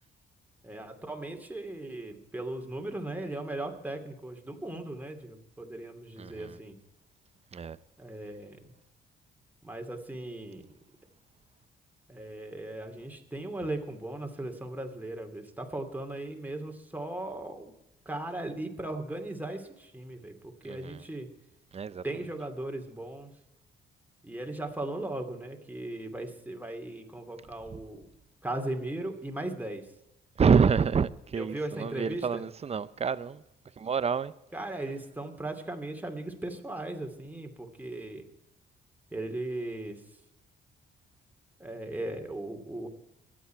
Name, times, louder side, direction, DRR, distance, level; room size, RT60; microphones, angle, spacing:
voice 1, 0.6-6.7 8.0-8.7 9.6-10.7 12.1-17.7 18.0-21.3 22.0-23.3 24.2-28.1 28.4-29.9 31.4-32.4 34.5-38.2 39.1-40.0 41.6-42.9, right 1 dB, 10° right, 2.7 m, -37 dB
voice 2, 6.2-6.6 7.5-7.8 20.6-21.0 21.7-22.0 27.7-27.8 30.4-33.4 33.8-34.3, right 6 dB, 30° right, 0.7 m, -27 dB
24.0 x 8.7 x 4.6 m
cardioid pair, 90°, 20 cm